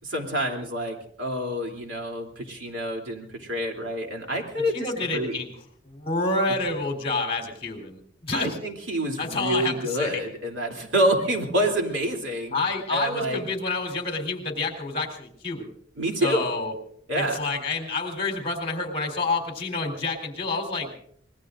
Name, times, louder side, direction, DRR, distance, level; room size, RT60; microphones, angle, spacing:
voice 1, 0.0-5.4 6.7-6.8 8.3-12.6 12.9-13.4 16.0-16.4 17.1-17.5, right 1 dB, 75° right, 1 dB, 3.2 m, -27 dB
voice 2, 4.7-5.5 5.9-8.5 9.2-10.2 12.5-15.7 16.2-16.7 17.2-20.9, left 3 dB, 30° left, 3 dB, 3.8 m, -28 dB
25.5 x 21.0 x 2.6 m, 0.65 s
head